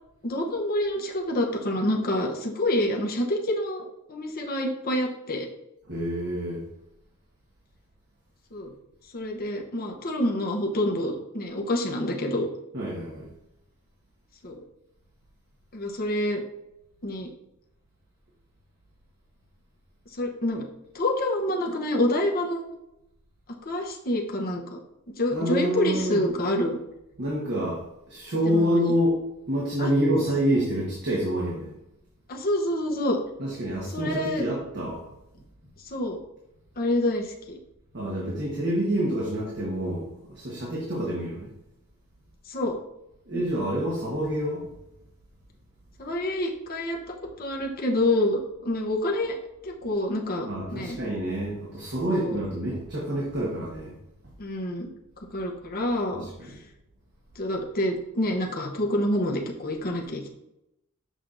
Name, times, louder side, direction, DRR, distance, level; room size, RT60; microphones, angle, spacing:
voice 1, 0.2-5.5 8.5-8.7 9.1-12.5 14.4-14.5 15.7-16.4 17.0-17.3 20.2-20.6 20.9-22.6 23.6-24.8 25.2-26.8 28.4-28.9 29.8-29.9 32.3-33.2 33.9-34.5 35.9-36.2 36.8-37.6 42.5-42.7 43.3-43.4 46.0-47.0 47.4-49.4 49.6-51.0 52.1-52.4 54.4-54.9 55.3-56.3 57.4-60.3, left 1 dB, 40° left, 0 dB, 0.9 m, -27 dB
voice 2, 5.9-6.6 12.7-13.3 25.3-26.2 27.2-29.2 29.5-31.7 33.4-35.1 37.9-41.5 43.3-44.7 50.4-53.9 56.1-56.6, equal, 50° right, -4 dB, 1.3 m, -27 dB
6.5 x 5.7 x 2.6 m, 0.88 s
head